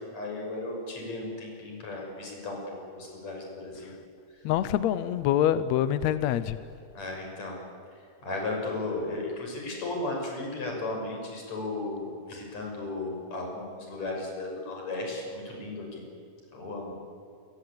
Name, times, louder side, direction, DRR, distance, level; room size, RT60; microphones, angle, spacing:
voice 1, 0.0-3.9 7.0-7.6 8.2-16.1 16.5-16.9, left 2 dB, 50° left, 0 dB, 7.5 m, -35 dB
voice 2, 4.5-6.6, left 11 dB, 75° left, 13 dB, 1.7 m, -25 dB
28.5 x 22.5 x 8.8 m, 2.4 s
omnidirectional pair, 3.9 m